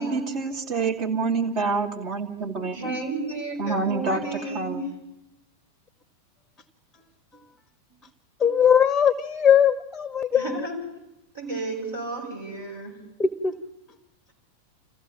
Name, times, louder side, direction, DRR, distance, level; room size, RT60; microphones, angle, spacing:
voice 1, 0.0-2.8 3.6-4.2 4.5-4.8, right 4 dB, 40° right, 2.7 m, -27 dB
voice 2, 2.7-4.8 10.3-10.8 11.3-12.9, right 3 dB, 60° right, 7.3 m, -32 dB
voice 3, 8.4-10.7 13.2-13.5, left 8 dB, 15° left, 0.9 m, -20 dB
27.0 x 15.0 x 7.2 m
figure-of-eight pair, 90°, 0 cm